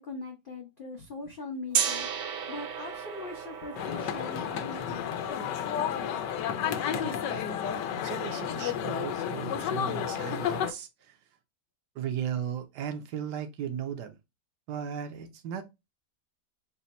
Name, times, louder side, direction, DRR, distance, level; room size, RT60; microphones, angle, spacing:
voice 1, 0.0-2.1 2.5-5.6, left 3 dB, 65° left, 0.5 m, -41 dB
Gong, 1.7-7.6, right 7 dB, 65° right, 1.0 m, -36 dB
sound 1, 3.7-10.7, left 9 dB, 85° left, 1.2 m, -31 dB
voice 2, 6.9-7.5 8.0-11.2 11.9-14.2 14.7-15.7, right 9 dB, 80° right, 1.3 m, -36 dB
4.1 x 2.1 x 4.0 m
omnidirectional pair, 1.8 m